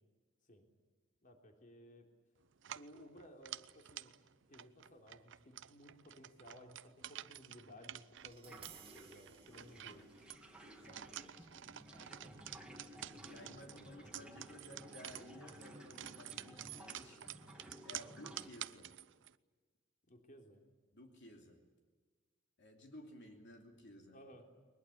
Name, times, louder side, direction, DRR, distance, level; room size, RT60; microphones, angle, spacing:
voice 1, 1.2-2.1 2.7-4.1 4.5-10.0 13.5-14.0 20.1-20.6 24.1-24.4, equal, 40° left, 3 dB, 3.3 m, -58 dB
sound 1, 2.6-19.4, right 11 dB, 65° right, 0.7 m, -51 dB
Tap, 8.2-14.3, right 8 dB, 30° right, 2.0 m, -63 dB
sound 2, 8.4-18.5, equal, 5° right, 2.4 m, -56 dB
voice 2, 9.5-10.1 10.6-12.5 13.2-17.4 17.8-18.9 20.9-21.6 22.6-24.2, left 1 dB, 60° left, 2 dB, 3.0 m, -57 dB
22.0 x 20.5 x 9.8 m, 1.4 s
head